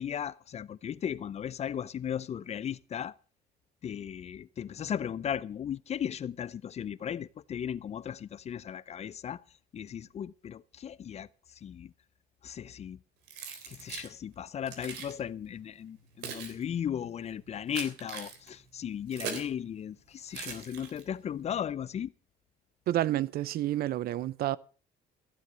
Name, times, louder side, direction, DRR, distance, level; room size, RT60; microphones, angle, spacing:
voice 1, 0.0-3.2 3.8-9.4 9.7-11.3 11.6-11.9 12.4-13.0 13.7-22.1, left 9 dB, 40° left, 0.6 m, -36 dB
Keys jangling, 13.3-14.1 14.7-15.1 15.9-19.6 20.3-21.2, right 6 dB, 85° right, 3.4 m, -41 dB
voice 2, 22.9-24.6, right 13 dB, 65° right, 0.7 m, -29 dB
15.0 x 8.1 x 6.9 m
cardioid pair, 110°, 17 cm